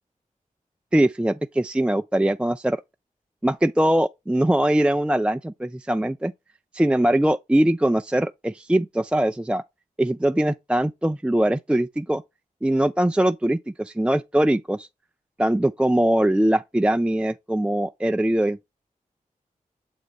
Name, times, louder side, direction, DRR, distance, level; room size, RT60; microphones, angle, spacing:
voice 1, 0.9-2.8 3.4-6.3 6.7-9.6 10.0-12.2 12.6-14.9 15.4-18.6, right 1 dB, 5° right, 0.4 m, -22 dB
7.4 x 3.3 x 4.0 m
cardioid pair, 45°, 15 cm